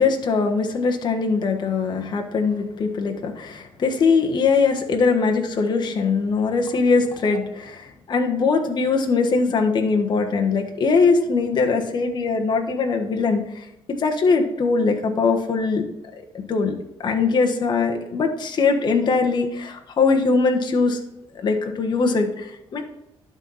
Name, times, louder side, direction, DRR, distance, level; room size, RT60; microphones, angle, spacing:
voice 1, 0.0-13.7 14.0-15.8 16.3-16.7 17.0-21.0 21.4-22.8, left 4 dB, 50° left, 3 dB, 1.3 m, -21 dB
11.5 x 4.2 x 5.6 m, 0.86 s
cardioid pair, 95°, 10 cm